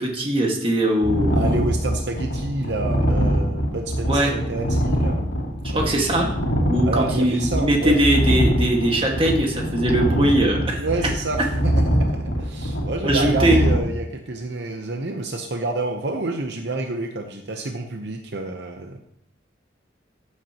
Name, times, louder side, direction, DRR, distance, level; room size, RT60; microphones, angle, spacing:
voice 1, 0.0-1.5 4.1-4.3 5.7-6.3 6.7-10.8 13.0-13.6, right 1 dB, 25° right, 1 dB, 1.7 m, -21 dB
sound 1, 1.0-13.8, equal, 80° left, 2.7 m, -23 dB
voice 2, 1.3-5.2 5.7-5.9 6.9-8.0 10.8-19.0, right 2 dB, 60° right, 4 dB, 0.8 m, -28 dB
15.0 x 8.2 x 2.9 m, 0.70 s
head